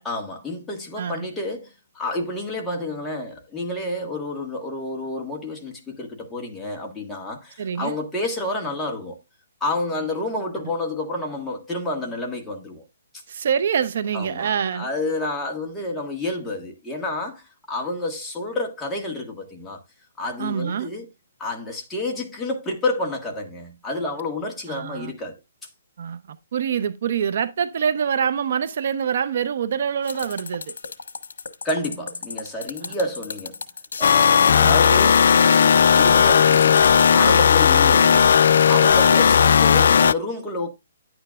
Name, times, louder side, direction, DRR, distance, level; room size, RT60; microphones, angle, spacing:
voice 1, 0.0-9.2 9.6-12.8 14.1-19.8 20.2-21.1 21.4-25.4 31.6-33.6 34.0-38.4 38.7-40.7, left 2 dB, 5° left, 1.6 m, -29 dB
voice 2, 7.6-8.0 13.3-14.9 20.4-20.9 24.7-25.1 26.0-30.7 32.8-32.9 34.6-34.8, right 7 dB, 50° right, 0.7 m, -25 dB
sound 1, 30.0-37.1, left 5 dB, 75° left, 1.5 m, -35 dB
sound 2, 34.0-40.1, left 7 dB, 55° left, 0.4 m, -15 dB
10.0 x 8.8 x 2.4 m
hypercardioid pair, 170°, 0 cm